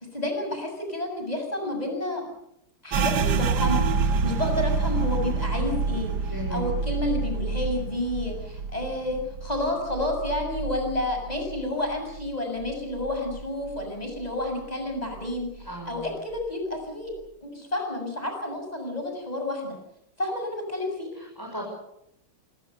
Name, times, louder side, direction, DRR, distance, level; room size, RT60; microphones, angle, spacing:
voice 1, 0.1-2.3 2.8-17.1 17.4-19.8 20.2-21.1, left 1 dB, 15° left, 3 dB, 7.3 m, -30 dB
sound 1, 2.9-12.3 12.6-13.8 14.2-14.6 15.1-15.7, right 4 dB, 55° right, 1.6 m, -28 dB
voice 2, 6.3-6.6 15.7-16.1 21.1-21.6, equal, 10° right, -1 dB, 6.6 m, -36 dB
26.5 x 22.5 x 6.8 m, 0.78 s
omnidirectional pair, 2.3 m